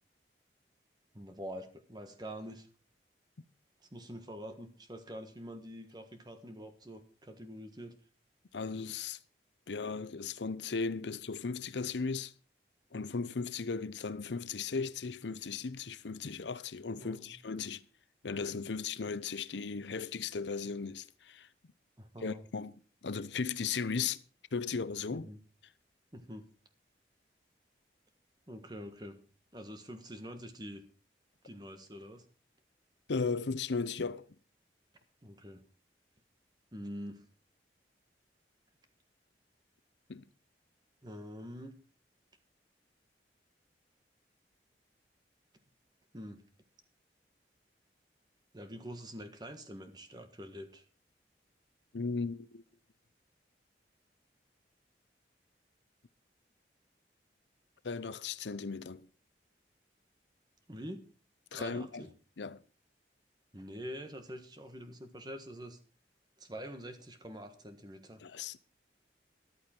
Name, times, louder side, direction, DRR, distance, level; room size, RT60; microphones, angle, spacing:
voice 1, 1.1-2.7 3.9-7.9 17.0-17.3 22.0-22.5 25.1-25.4 26.1-26.5 28.5-29.2 29.5-30.8 31.4-32.2 35.2-35.6 36.7-37.2 41.0-41.8 46.1-46.4 48.5-50.8 60.7-61.0 61.5-62.1 63.5-65.8 66.4-68.2, equal, 25° right, 1.4 m, -45 dB
voice 2, 8.5-9.2 9.7-12.3 12.9-17.8 18.2-21.5 22.2-22.8 23.0-24.2 24.5-25.3 33.1-34.3 40.1-40.2 51.9-52.6 57.8-59.1 61.5-62.1 62.4-62.6 68.2-68.6, left 5 dB, 85° left, 0.7 m, -36 dB
14.0 x 11.5 x 4.4 m
head